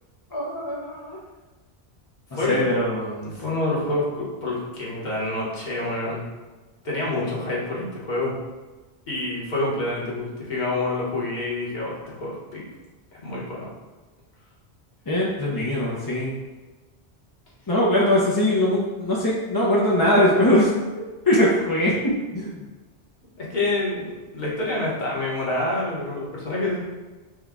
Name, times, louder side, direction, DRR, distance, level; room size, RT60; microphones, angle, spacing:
voice 1, 0.3-1.2 2.3-3.3 15.1-16.3 17.7-20.7 21.3-21.9 22.3-22.6, left 1 dB, 25° left, -6 dB, 0.6 m, -21 dB
voice 2, 3.2-6.2 6.8-8.3 9.1-12.6 13.1-13.7 23.4-26.8, left 2 dB, 45° left, -6 dB, 1.3 m, -27 dB
6.2 x 2.3 x 3.6 m, 1.2 s
omnidirectional pair, 1.1 m